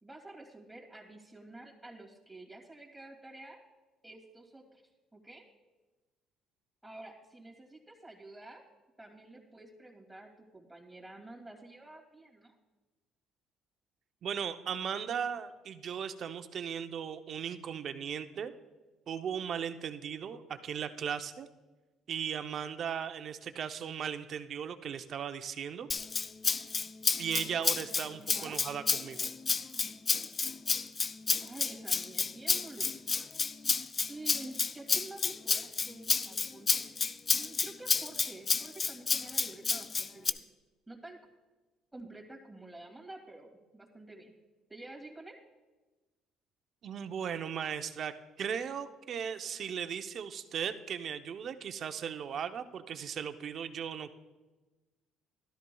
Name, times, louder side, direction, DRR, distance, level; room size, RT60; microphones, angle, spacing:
voice 1, 0.0-3.6 4.0-4.8 5.1-5.4 6.8-8.6 9.0-12.5 28.1-28.6 31.4-33.0 34.1-40.4 40.9-41.2 41.9-44.3 44.7-45.4, right 2 dB, 5° right, 0 dB, 2.5 m, -49 dB
voice 2, 14.2-18.5 19.1-21.5 22.1-25.9 27.2-29.3 46.8-48.1 48.4-54.1, right 8 dB, 55° right, 9 dB, 0.6 m, -37 dB
Rattle (instrument), 25.9-40.3, left 4 dB, 35° left, 0.4 m, -31 dB
13.0 x 12.5 x 2.3 m, 1.2 s
supercardioid pair, 80°, 0 cm